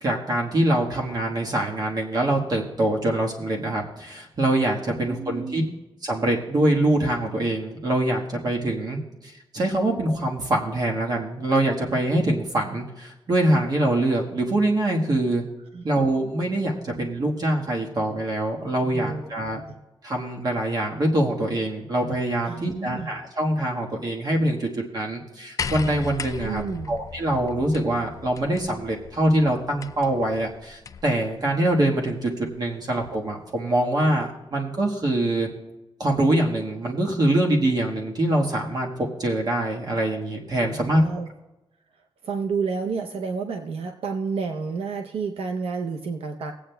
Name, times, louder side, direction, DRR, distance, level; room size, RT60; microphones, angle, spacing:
voice 1, 0.0-5.6 6.0-15.4 15.8-19.6 20.0-26.6 26.9-35.5 36.0-41.0, right 1 dB, 45° right, -1 dB, 1.4 m, -24 dB
voice 2, 5.1-5.7 15.7-15.8 18.9-19.6 22.4-23.1 26.4-27.0 40.7-41.3 42.2-46.5, right 5 dB, 90° right, 4 dB, 0.6 m, -30 dB
sound 1, 25.6-31.2 32.3-32.4, left 6 dB, 35° left, 0.3 m, -36 dB
20.0 x 8.5 x 2.2 m, 1.0 s
wide cardioid pair, 145°, 10 cm